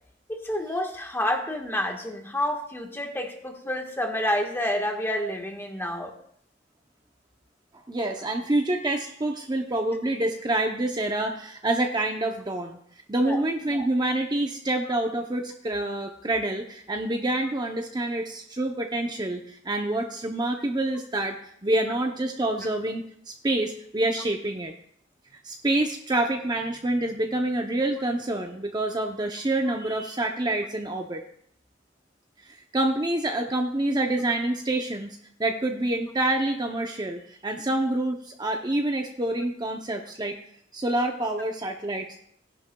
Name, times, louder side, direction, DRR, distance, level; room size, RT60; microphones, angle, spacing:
voice 1, 0.3-6.1 13.2-13.4, left 1 dB, 15° left, 3 dB, 1.4 m, -29 dB
voice 2, 7.9-12.8 13.1-24.7 25.4-31.2 32.4-40.4 40.7-42.1, right 1 dB, 25° right, 3 dB, 0.7 m, -27 dB
17.0 x 11.0 x 2.3 m, 0.68 s
head